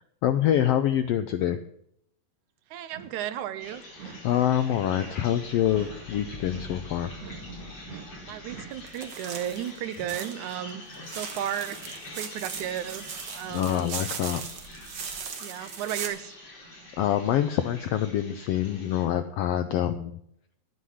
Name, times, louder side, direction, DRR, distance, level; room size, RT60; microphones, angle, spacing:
voice 1, 0.2-1.6 4.2-7.1 13.5-14.4 17.0-20.2, left 11 dB, 85° left, 10 dB, 1.4 m, -25 dB
voice 2, 2.7-3.8 8.2-10.8 11.1-13.9 15.4-16.3, right 11 dB, 80° right, 12 dB, 2.2 m, -34 dB
sound 1, 2.8-3.5 4.0-4.6 4.9-8.8, right 7 dB, 65° right, 2.1 m, -46 dB
sound 2, 3.6-19.0, left 1 dB, 50° left, 5.8 m, -45 dB
sound 3, 8.9-10.5 10.9-16.1, right 6 dB, 50° right, 1.5 m, -38 dB
10.0 x 9.5 x 6.3 m, 0.73 s
omnidirectional pair, 3.5 m